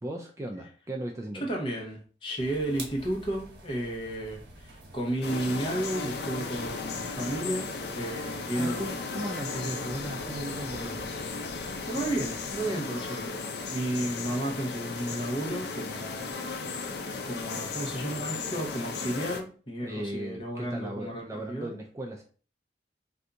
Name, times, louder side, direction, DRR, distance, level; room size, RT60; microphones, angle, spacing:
voice 1, 0.0-1.5 8.6-11.1 19.8-22.2, right 1 dB, 15° right, 2 dB, 0.3 m, -37 dB
voice 2, 1.4-9.1 11.9-13.4 13.7-16.3 17.2-21.8, right 1 dB, 30° left, -1 dB, 0.8 m, -33 dB
sound 1, 2.4-12.7, right 1 dB, 75° right, 1.0 m, -49 dB
sound 2, 5.2-19.4, left 4 dB, 65° left, 0.5 m, -35 dB
2.6 x 2.3 x 3.8 m, 0.39 s
head